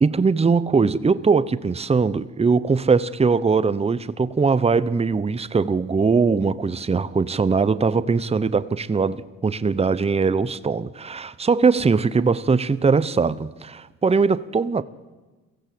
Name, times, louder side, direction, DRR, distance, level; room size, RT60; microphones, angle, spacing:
voice 1, 0.0-14.8, right 4 dB, 20° right, 0.8 m, -21 dB
22.5 x 15.5 x 7.8 m
cardioid pair, 90°, 30 cm